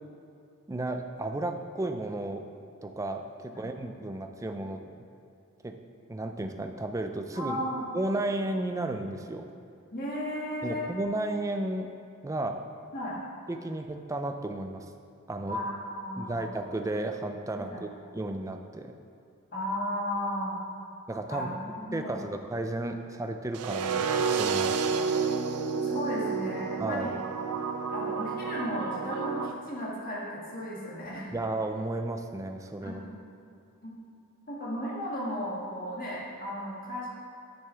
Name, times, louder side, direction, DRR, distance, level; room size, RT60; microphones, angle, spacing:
voice 1, 0.7-2.5 2.8-5.0 5.6-5.8 6.1-7.6 7.9-9.5 10.6-11.9 12.2-12.6 13.5-14.9 15.3-15.6 16.2-18.9 21.1-21.5 21.9-24.8 26.8-27.1 31.3-33.0, right 2 dB, 15° right, 6 dB, 0.3 m, -33 dB
voice 2, 7.3-7.8 9.9-10.9 12.9-13.2 15.5-16.4 17.6-17.8 19.5-20.5 21.3-22.2 25.8-27.2 27.9-31.3 32.8-33.0 33.8-33.9 34.5-37.1, equal, 40° left, -5 dB, 1.8 m, -35 dB
sound 1, 23.5-29.5, right 5 dB, 85° right, 0.5 m, -30 dB
9.6 x 6.9 x 3.3 m, 2.6 s
head